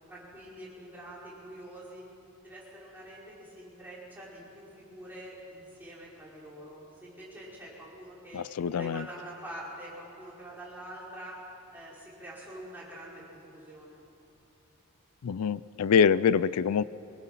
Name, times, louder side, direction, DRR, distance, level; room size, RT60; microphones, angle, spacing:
voice 1, 0.1-2.1 2.4-8.4 8.7-11.4 11.7-14.0, right 1 dB, 10° right, -7 dB, 5.4 m, -45 dB
voice 2, 8.3-9.1 15.2-16.8, left 7 dB, 80° left, 19 dB, 0.4 m, -25 dB
24.0 x 20.5 x 5.8 m, 2.8 s
head